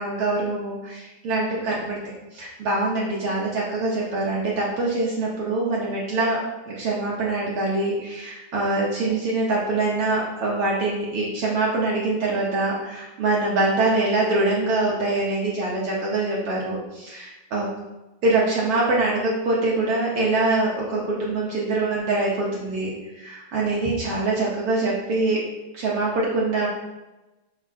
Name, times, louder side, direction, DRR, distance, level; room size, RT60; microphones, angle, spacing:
voice 1, 0.0-2.0 2.3-17.7 18.2-22.9 23.2-25.4 25.7-26.7, right 2 dB, 70° right, -5 dB, 1.3 m, -24 dB
6.4 x 6.0 x 2.8 m, 1.1 s
omnidirectional pair, 3.8 m